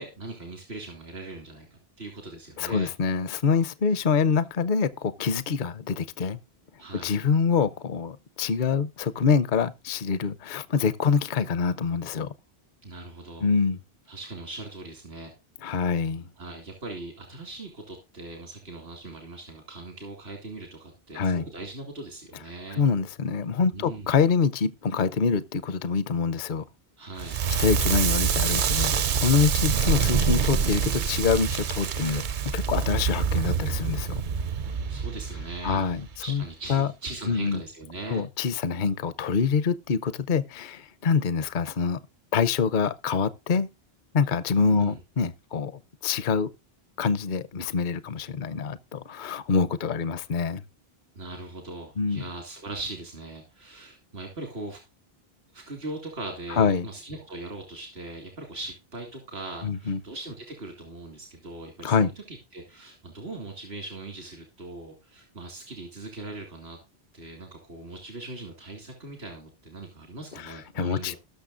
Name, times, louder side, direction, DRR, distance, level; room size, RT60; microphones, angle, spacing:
voice 1, 0.0-2.9 6.8-7.1 12.8-13.5 14.1-15.3 16.4-22.8 23.7-24.1 27.0-27.4 29.6-29.8 34.7-35.8 36.2-38.2 44.7-45.0 51.1-54.8 55.5-66.8 67.1-71.2, right 2 dB, 85° right, 2.6 m, -40 dB
voice 2, 2.6-6.4 6.9-12.3 13.4-13.8 15.6-16.3 21.1-21.4 22.8-26.6 27.6-32.3 32.5-34.2 35.6-36.4 36.7-36.9 37.3-37.6 38.1-42.0 42.3-43.7 44.1-46.5 47.0-50.6 52.0-52.2 56.5-56.9 59.6-60.0 61.8-62.1 70.3-71.2, left 5 dB, 55° left, 0.8 m, -25 dB
Crackle, 27.2-36.2, right 6 dB, 55° right, 0.7 m, -26 dB
19.0 x 6.5 x 2.5 m
omnidirectional pair, 1.0 m